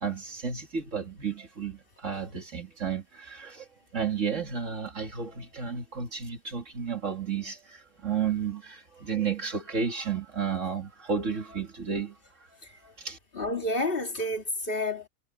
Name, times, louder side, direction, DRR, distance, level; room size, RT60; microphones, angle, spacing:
voice 1, 0.0-3.7 3.9-12.2 12.8-13.2, right 6 dB, 50° right, 2.6 m, -32 dB
voice 2, 13.3-15.1, left 1 dB, 35° left, 2.3 m, -29 dB
omnidirectional pair, 1.7 m